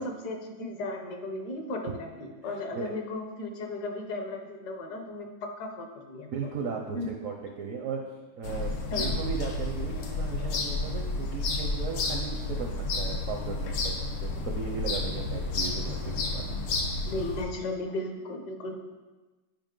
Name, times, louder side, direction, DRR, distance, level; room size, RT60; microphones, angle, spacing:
voice 1, 0.0-6.3 6.9-7.1 8.9-9.2 17.1-18.8, left 2 dB, 65° left, 3 dB, 1.3 m, -35 dB
voice 2, 6.3-8.0 8.4-13.9 14.2-16.6, right 5 dB, 70° right, 2 dB, 0.7 m, -36 dB
sound 1, 8.4-17.4, left 2 dB, 85° left, 1.6 m, -31 dB
9.0 x 5.0 x 3.7 m, 1.2 s
omnidirectional pair, 2.1 m